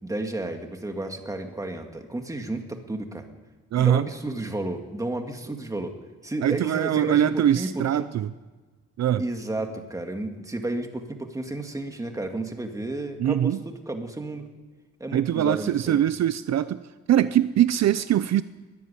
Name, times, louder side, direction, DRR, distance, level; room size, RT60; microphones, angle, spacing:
voice 1, 0.0-3.3 3.7-8.1 9.2-14.5 15.0-16.0, right 2 dB, 10° right, 4 dB, 2.0 m, -32 dB
voice 2, 3.7-4.1 6.4-8.3 9.0-9.2 13.2-13.6 15.1-16.8 17.1-18.4, right 11 dB, 60° right, 14 dB, 0.6 m, -22 dB
21.5 x 14.0 x 10.0 m, 1.3 s
wide cardioid pair, 175°, 30 cm